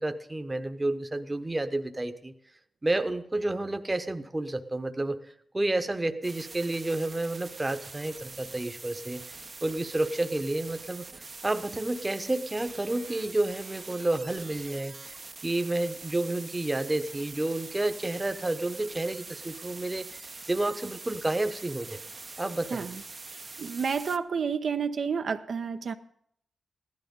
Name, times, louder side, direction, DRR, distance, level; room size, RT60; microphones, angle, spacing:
voice 1, 0.0-2.3 2.8-5.2 5.5-11.0 11.4-15.1 15.4-22.0 22.4-22.8, right 2 dB, 20° right, 9 dB, 1.0 m, -30 dB
sound 1, 6.2-24.2, right 3 dB, 35° right, 0.8 m, -44 dB
voice 2, 23.6-25.9, right 6 dB, 65° right, 7 dB, 0.9 m, -30 dB
15.5 x 12.0 x 5.4 m, 0.67 s
wide cardioid pair, 105°, 0 cm